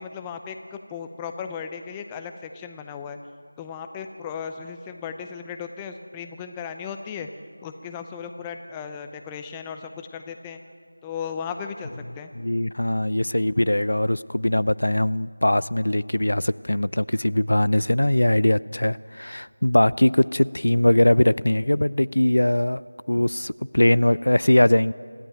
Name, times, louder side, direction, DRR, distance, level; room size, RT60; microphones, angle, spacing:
voice 1, 0.0-3.2 3.6-7.3 7.6-10.6 11.0-12.3, left 6 dB, 10° left, 6 dB, 0.6 m, -36 dB
voice 2, 12.4-22.8 23.1-24.9, left 1 dB, 80° left, 19 dB, 0.5 m, -21 dB
25.5 x 14.0 x 9.1 m, 2.1 s
figure-of-eight pair, 175°, 0 cm